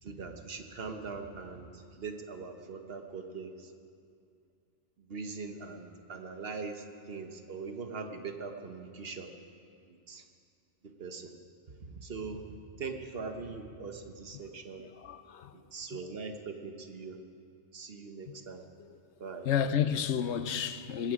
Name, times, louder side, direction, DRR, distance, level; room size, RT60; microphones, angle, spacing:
voice 1, 0.0-3.7 5.1-9.3 9.9-10.2 11.0-11.3 11.8-12.4 12.7-14.9 15.5-17.2 17.7-18.6 19.2-19.5, right 4 dB, 55° right, 1.4 m, -41 dB
voice 2, 14.8-15.6 18.3-18.4 18.8-19.0 19.4-21.1, left 8 dB, 75° left, 1.0 m, -31 dB
19.5 x 15.0 x 5.0 m
omnidirectional pair, 1.2 m